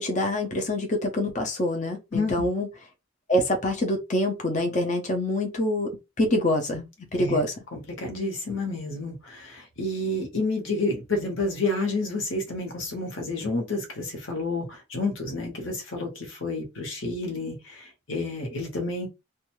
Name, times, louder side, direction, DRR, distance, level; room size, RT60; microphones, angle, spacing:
voice 1, 0.0-2.7 3.3-5.9 6.2-7.5, left 1 dB, 35° left, 0.5 m, -25 dB
voice 2, 2.1-2.5 7.1-7.4 7.7-19.1, left 2 dB, 70° left, 1.0 m, -30 dB
2.5 x 2.2 x 3.0 m
head